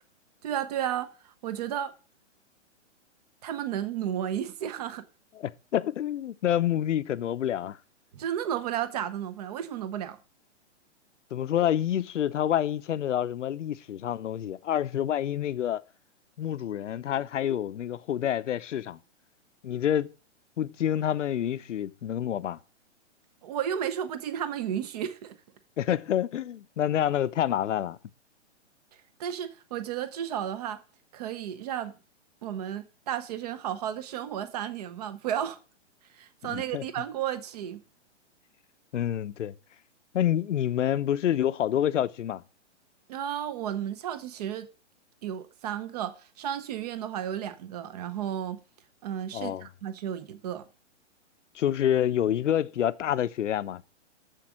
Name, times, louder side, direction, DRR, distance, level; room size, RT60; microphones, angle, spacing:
voice 1, 0.4-1.1 1.4-1.9 3.4-5.0 8.1-10.2 23.4-25.4 29.2-30.8 31.1-31.9 32.4-35.6 36.1-37.8 43.1-44.7 45.2-48.6 49.0-50.6, right 10 dB, 35° right, 0.8 m, -33 dB
voice 2, 5.4-7.8 11.3-15.8 16.4-19.0 19.6-20.1 20.6-22.6 25.8-28.0 36.4-36.8 38.9-39.5 40.1-42.4 49.3-49.7 51.5-53.8, left 10 dB, 85° left, 0.7 m, -28 dB
7.5 x 7.2 x 6.2 m
hypercardioid pair, 160°, 36 cm